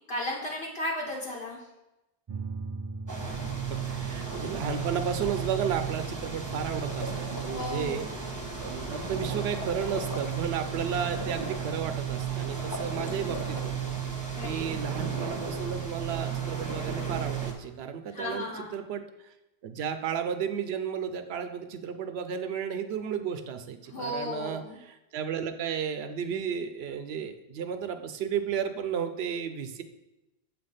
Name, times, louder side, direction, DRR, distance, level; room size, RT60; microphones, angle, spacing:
voice 1, 0.1-1.6 7.5-8.1 14.3-14.7 18.1-18.7 23.9-24.8, left 1 dB, 70° left, -3 dB, 1.3 m, -34 dB
sound 1, 2.3-9.2, right 3 dB, 35° right, 0.4 m, -43 dB
sound 2, 3.1-17.5, right 6 dB, 20° right, 1.0 m, -34 dB
voice 2, 3.7-8.1 8.6-14.1 14.4-19.0 19.6-29.8, right 7 dB, 75° right, 8 dB, 0.8 m, -33 dB
sound 3, 6.8-7.8 9.6-10.5 12.6-13.7, left 2 dB, 30° left, 0.4 m, -40 dB
7.2 x 3.5 x 5.5 m, 0.95 s
omnidirectional pair, 1.1 m